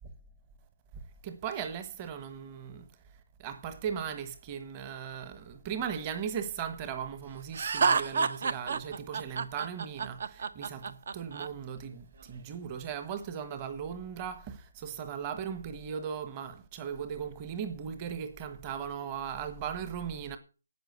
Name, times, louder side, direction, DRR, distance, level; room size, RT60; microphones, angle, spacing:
voice 1, 1.2-2.9 3.4-20.4, right 7 dB, 15° right, 1.4 m, -38 dB
Laughter, 7.5-11.5, right 5 dB, 40° right, 1.0 m, -29 dB
12.0 x 9.0 x 8.1 m
hypercardioid pair, 175°, 0 cm